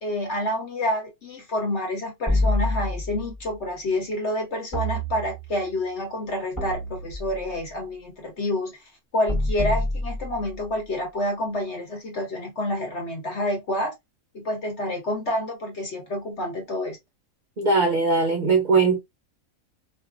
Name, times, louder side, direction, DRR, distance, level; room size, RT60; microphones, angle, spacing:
voice 1, 0.0-8.8 9.1-13.9 14.3-17.0, left 1 dB, 50° left, 1.3 m, -28 dB
sound 1, 2.3-3.3 4.7-5.7 6.6-7.6 9.3-10.7, left 1 dB, 15° left, 1.1 m, -27 dB
voice 2, 17.6-19.0, right 4 dB, 50° right, 0.5 m, -20 dB
2.6 x 2.5 x 2.3 m
omnidirectional pair, 1.5 m